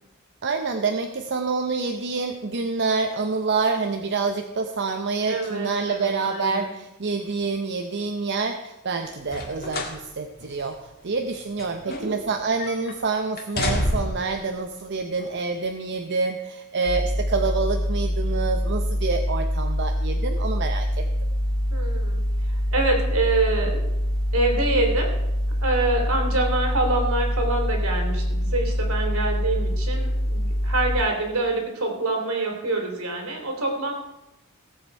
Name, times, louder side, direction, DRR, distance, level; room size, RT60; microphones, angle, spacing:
voice 1, 0.4-21.0, right 4 dB, 55° right, 5 dB, 0.7 m, -27 dB
voice 2, 5.3-6.7 11.8-12.1 21.7-22.2 22.7-23.8 24.3-25.1 25.6-33.9, right 2 dB, 75° right, 1 dB, 3.1 m, -26 dB
sound 1, 9.2-10.0 10.4-10.5 11.3-12.3 12.6-13.0 13.4-14.3 15.2-15.3, left 1 dB, 45° left, 1.9 m, -28 dB
sound 2, 16.9-31.0, equal, 60° left, 2.1 m, -25 dB
17.0 x 7.9 x 4.7 m, 0.92 s
head